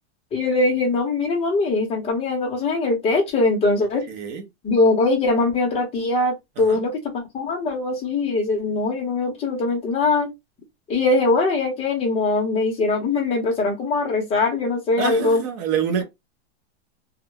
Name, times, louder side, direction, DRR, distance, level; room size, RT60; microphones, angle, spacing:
voice 1, 0.3-4.0 4.6-10.3 10.9-15.4, left 3 dB, 15° left, 0.7 m, -21 dB
voice 2, 4.1-4.4 6.6-6.8 15.0-16.0, right 8 dB, 25° right, 0.4 m, -26 dB
2.2 x 2.1 x 3.1 m
supercardioid pair, 160°, 34 cm